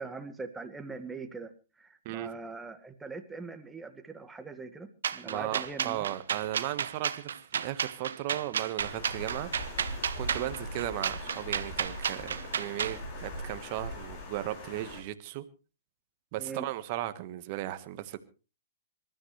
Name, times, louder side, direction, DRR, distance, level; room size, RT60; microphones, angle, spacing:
voice 1, 0.0-1.5 1.8-6.0 10.3-10.5 16.4-16.7, right 4 dB, 10° right, 8 dB, 1.7 m, -42 dB
sound 1, 5.0-13.0, right 7 dB, 70° right, 1.0 m, -32 dB
voice 2, 5.2-9.5 10.2-15.4 16.3-18.2, right 14 dB, 45° right, 10 dB, 1.4 m, -36 dB
Water, 8.8-15.0, left 1 dB, 45° left, 4.9 m, -41 dB
26.5 x 13.0 x 3.2 m, 0.33 s
figure-of-eight pair, 110°, 0 cm